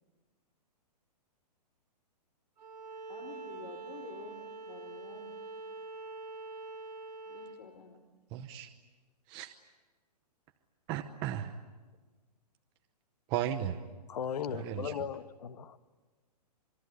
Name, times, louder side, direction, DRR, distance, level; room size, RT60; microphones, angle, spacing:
Bowed string instrument, 2.6-7.6, right 3 dB, 70° right, 4.4 m, -45 dB
voice 1, 3.1-5.3 7.3-8.0, left 5 dB, 90° left, 4 dB, 4.2 m, -49 dB
voice 2, 8.3-8.7 9.3-9.5 10.9-11.5 13.3-13.8 14.5-15.1, right 11 dB, 20° right, 6 dB, 0.9 m, -35 dB
voice 3, 14.1-15.8, left 8 dB, 70° left, 13 dB, 1.3 m, -37 dB
27.0 x 22.5 x 9.7 m, 1.4 s
hypercardioid pair, 165°, 21 cm